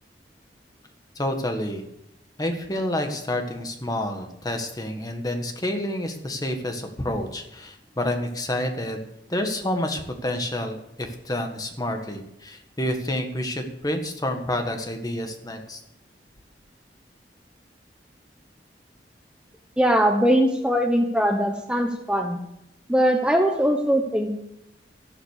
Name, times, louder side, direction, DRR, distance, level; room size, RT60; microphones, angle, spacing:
voice 1, 1.1-1.8 2.4-15.8, left 1 dB, 20° left, 4 dB, 1.6 m, -29 dB
voice 2, 19.8-22.4 22.9-24.4, equal, 5° right, 3 dB, 1.0 m, -21 dB
13.0 x 12.0 x 6.6 m, 0.83 s
head